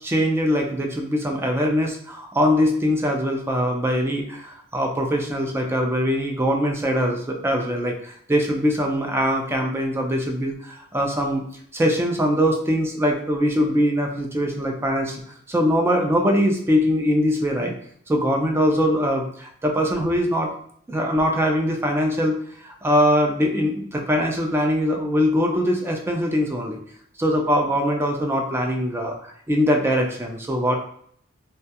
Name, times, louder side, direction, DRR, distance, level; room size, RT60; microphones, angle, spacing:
voice 1, 0.0-11.4 11.7-15.2 15.5-17.7 18.1-20.5 20.9-26.8 27.2-30.7, equal, 10° right, 2 dB, 0.3 m, -22 dB
2.2 x 2.2 x 2.7 m, 0.62 s
head